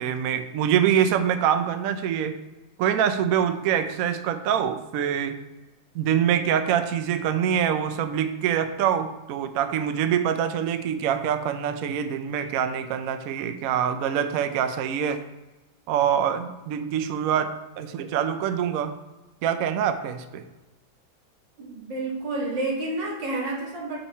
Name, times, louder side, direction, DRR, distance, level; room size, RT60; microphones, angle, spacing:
voice 1, 0.0-2.3 2.8-5.4 5.9-15.2 15.9-18.9 19.4-20.4, right 9 dB, 85° right, 10 dB, 0.7 m, -25 dB
voice 2, 21.6-24.0, right 2 dB, 65° right, -3 dB, 2.3 m, -29 dB
7.2 x 5.5 x 4.2 m, 1.1 s
omnidirectional pair, 2.1 m